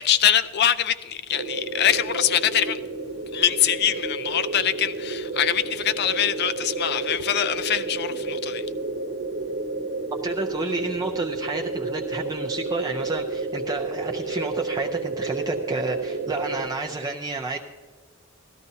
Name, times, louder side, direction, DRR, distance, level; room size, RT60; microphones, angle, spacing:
voice 1, 0.0-2.8 3.3-8.7, left 10 dB, 50° left, 0.5 m, -23 dB
sound 1, 1.3-16.7, right 3 dB, 60° right, 1.0 m, -31 dB
voice 2, 10.2-17.6, right 3 dB, 20° right, 0.5 m, -30 dB
17.5 x 13.0 x 2.7 m
head